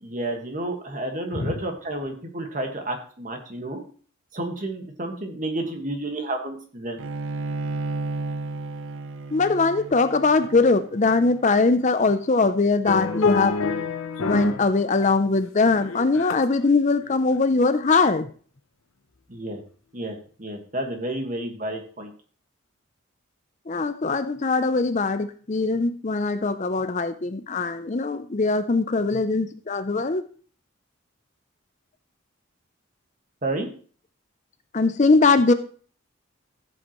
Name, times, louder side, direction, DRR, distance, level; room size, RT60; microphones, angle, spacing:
voice 1, 0.0-3.8 4.3-7.0 19.3-19.6 19.9-22.1 33.4-33.7, right 1 dB, 35° right, 4 dB, 1.6 m, -31 dB
Bowed string instrument, 7.0-12.3, right 3 dB, 70° right, 0.6 m, -33 dB
voice 2, 9.3-13.6 14.2-18.3 23.7-30.2 34.7-35.5, left 3 dB, 35° left, 11 dB, 0.5 m, -21 dB
sound 1, 12.9-14.7 15.0-16.6 17.1-17.3, left 4 dB, 85° left, 0.8 m, -27 dB
14.5 x 7.8 x 3.1 m, 0.42 s
head